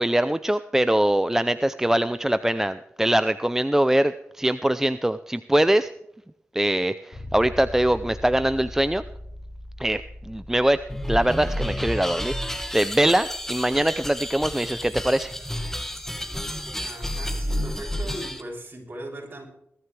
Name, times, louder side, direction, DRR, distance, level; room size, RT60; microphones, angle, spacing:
voice 1, 0.0-5.9 6.5-9.0 9.8-10.8 11.1-15.3, right 1 dB, 10° right, 0.6 m, -23 dB
Bass guitar, 7.1-17.0, left 1 dB, 55° left, 4.2 m, -43 dB
sound 1, 10.9-18.4, equal, 10° left, 2.0 m, -31 dB
voice 2, 16.8-19.5, right 1 dB, 40° right, 7.0 m, -38 dB
20.5 x 13.0 x 3.4 m
cardioid pair, 65°, 5 cm